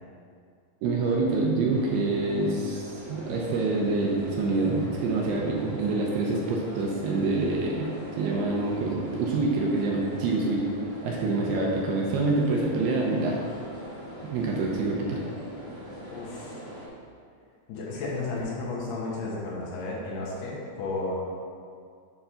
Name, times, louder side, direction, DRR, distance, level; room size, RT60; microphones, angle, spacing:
voice 1, 0.8-7.9 8.2-10.7 11.0-13.4 14.2-15.2, right 3 dB, 75° right, -2 dB, 2.6 m, -26 dB
sound 1, 1.7-16.9, equal, 85° left, 0.4 m, -41 dB
voice 2, 16.1-16.5 17.7-21.1, left 3 dB, 70° left, -4 dB, 3.1 m, -33 dB
7.8 x 4.8 x 5.6 m, 2.2 s
omnidirectional pair, 5.1 m